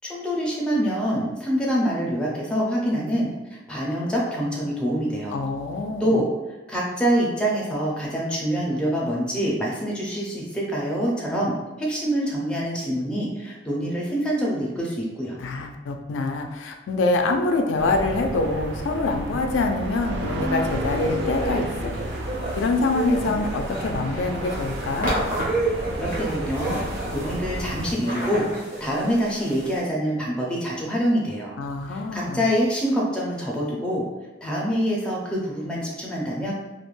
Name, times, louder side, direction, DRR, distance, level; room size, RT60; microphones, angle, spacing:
voice 1, 0.0-5.4 6.0-6.3 6.7-15.4 25.9-26.8 27.1-28.5 28.8-31.5 31.9-34.0 34.4-36.5, equal, 5° left, -4 dB, 0.4 m, -25 dB
voice 2, 5.3-6.2 15.4-21.9 22.6-25.1 31.6-32.4, left 3 dB, 90° left, 4 dB, 0.3 m, -25 dB
sound 1, 17.8-27.9, right 1 dB, 70° right, 0.3 m, -32 dB
sound 2, 20.7-29.8, right 2 dB, 45° right, 0.8 m, -31 dB
2.4 x 2.1 x 3.0 m, 1.1 s
head